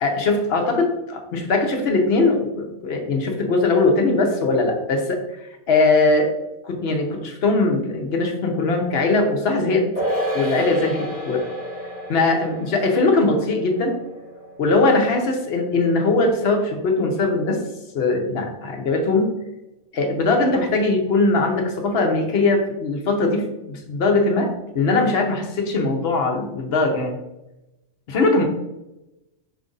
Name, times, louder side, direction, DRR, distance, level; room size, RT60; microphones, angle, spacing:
voice 1, 0.0-6.3 6.6-9.9 10.3-11.4 12.1-14.0 14.6-17.6 17.9-19.3 19.9-24.5 24.7-27.2 28.1-28.4, left 3 dB, 70° left, 3 dB, 1.0 m, -20 dB
sound 1, 10.0-16.6 16.9-17.0, equal, 10° right, 1.4 m, -31 dB
5.0 x 2.5 x 3.9 m, 0.94 s
omnidirectional pair, 1.1 m